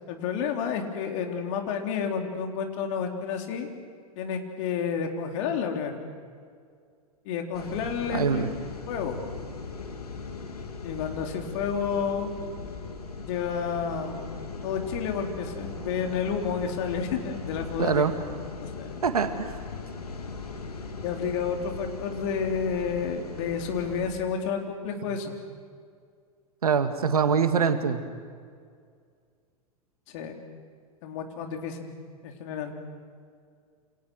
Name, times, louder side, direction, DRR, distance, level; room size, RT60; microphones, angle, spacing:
voice 1, 0.1-3.7 4.2-6.0 7.3-8.5 8.9-9.2 10.8-12.3 13.2-14.3 14.6-18.1 18.6-19.0 21.0-25.3 30.1-30.3 31.0-31.9 32.2-32.7, left 6 dB, 55° left, 3 dB, 4.0 m, -30 dB
sound 1, 7.5-24.1, left 4 dB, 80° left, 3.1 m, -39 dB
voice 2, 8.1-8.5 17.8-18.1 19.0-19.5 26.6-28.0, right 6 dB, 75° right, 8 dB, 2.1 m, -24 dB
29.0 x 27.0 x 6.5 m, 2.1 s
figure-of-eight pair, 95°, 19 cm